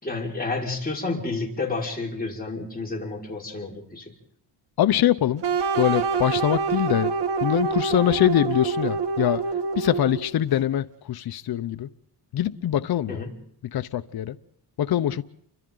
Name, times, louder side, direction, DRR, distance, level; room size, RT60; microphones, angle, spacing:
voice 1, 0.0-4.1 13.1-13.3, left 3 dB, 20° left, 5.3 m, -30 dB
voice 2, 4.8-5.4 5.8-7.1 7.4-9.4 9.8-11.9 12.3-13.3 13.6-14.4 14.8-15.2, left 12 dB, 60° left, 0.8 m, -23 dB
sound 1, 5.4-10.4, right 5 dB, 75° right, 2.1 m, -26 dB
29.5 x 24.5 x 3.9 m
cardioid pair, 90°, 42 cm